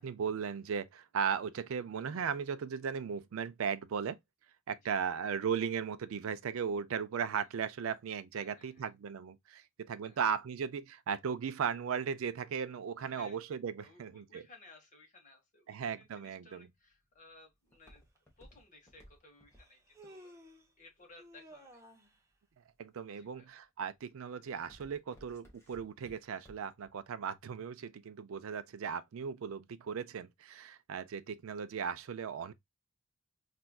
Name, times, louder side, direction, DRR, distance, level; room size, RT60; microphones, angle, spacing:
voice 1, 0.0-4.2 4.7-14.4 15.7-16.7 22.8-32.5, right 7 dB, 70° right, 0.4 m, -37 dB
voice 2, 4.8-5.1 8.3-8.9 10.0-10.2 13.0-13.4 13.8-18.0 18.4-20.3 20.8-21.8 23.1-23.5, left 2 dB, 35° left, 1.2 m, -59 dB
Walk footsteps, 16.7-21.7 22.3-22.8 23.3-23.6 24.0-26.9 27.2-27.3, equal, 10° left, 1.0 m, -59 dB
Human voice, 18.2-18.3 19.5-20.7 21.2-22.2, equal, 15° right, 0.5 m, -55 dB
4.3 x 2.5 x 2.2 m
head